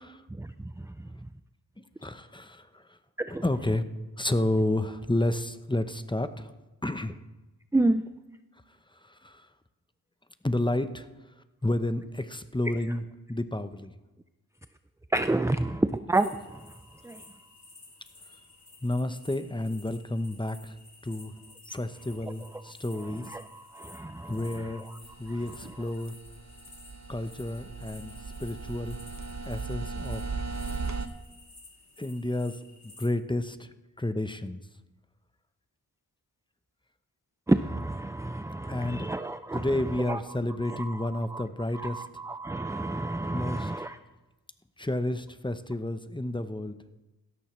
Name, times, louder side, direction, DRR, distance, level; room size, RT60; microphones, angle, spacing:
voice 1, 0.4-1.3 3.2-3.4 7.7-8.0 15.1-17.3 22.2-22.6 23.0-25.0 25.3-25.8 37.5-40.2 40.6-41.4 41.7-44.0, right 2 dB, 10° right, 11 dB, 0.4 m, -31 dB
voice 2, 1.8-3.0 3.4-3.8 4.2-6.5 6.8-7.2 8.9-9.5 10.4-11.1 11.6-13.0 13.3-13.9 18.8-20.8 21.0-21.3 21.7-23.4 24.3-24.8 25.2-26.1 27.1-28.1 28.4-29.0 29.5-30.2 32.0-33.7 34.0-34.6 38.7-39.1 39.5-42.0 43.3-43.7 44.8-46.8, left 1 dB, 10° left, 10 dB, 0.8 m, -30 dB
sound 1, 16.1-33.1, left 2 dB, 45° left, 2.5 m, -53 dB
sound 2, 25.0-31.1, right 4 dB, 45° right, 0.9 m, -37 dB
17.0 x 13.5 x 3.2 m, 1.1 s
cardioid pair, 40°, 40 cm